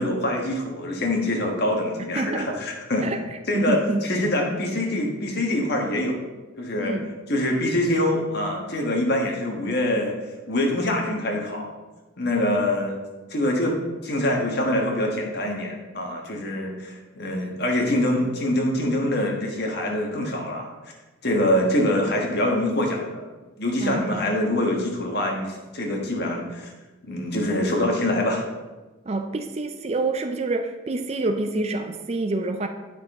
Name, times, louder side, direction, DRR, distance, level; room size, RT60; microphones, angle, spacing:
voice 1, 0.0-3.1 3.5-6.3 6.6-6.9 7.3-10.1 10.5-11.7 12.2-13.0 13.3-13.7 14.0-20.7 21.2-23.2 23.6-26.7 27.1-28.5, left 1 dB, 50° left, 1 dB, 1.4 m, -24 dB
voice 2, 2.2-2.5 3.0-4.0 6.8-7.1 23.8-24.2 29.1-32.7, right 2 dB, 30° right, 6 dB, 0.4 m, -27 dB
9.4 x 6.1 x 3.6 m, 1.2 s
head